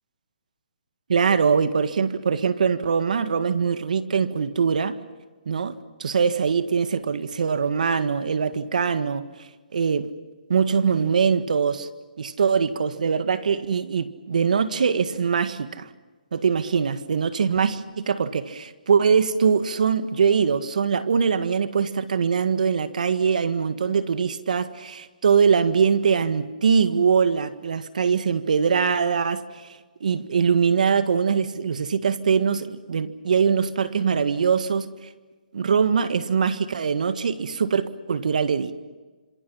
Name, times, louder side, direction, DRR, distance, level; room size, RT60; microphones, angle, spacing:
voice 1, 1.1-5.0 5.5-9.3 9.7-10.1 10.5-11.9 12.2-15.9 16.3-35.1 35.5-38.7, right 6 dB, 65° right, 1.7 m, -22 dB
28.0 x 26.5 x 5.7 m
hypercardioid pair, 155°, 4 cm